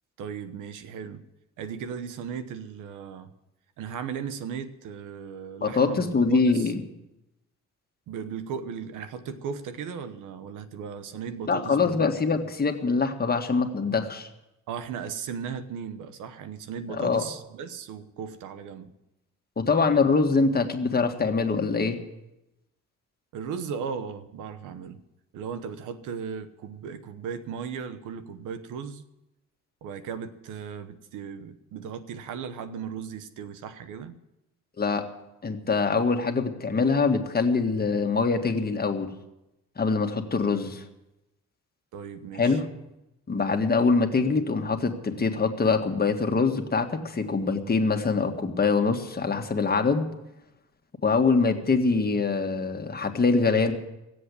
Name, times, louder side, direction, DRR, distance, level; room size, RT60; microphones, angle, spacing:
voice 1, 0.2-1.2 1.6-3.3 3.8-6.7 8.1-12.5 14.7-18.9 23.3-25.0 25.3-29.0 29.8-34.2 41.9-42.6, right 7 dB, 90° right, 11 dB, 1.1 m, -36 dB
voice 2, 5.6-6.8 11.5-14.3 17.0-17.3 19.6-22.0 34.8-35.1 35.4-39.1 39.8-40.8 42.3-42.7 43.3-50.1 51.0-53.7, left 4 dB, 30° left, 5 dB, 1.7 m, -24 dB
17.5 x 7.8 x 8.3 m, 0.92 s
cardioid pair, 90°, 30 cm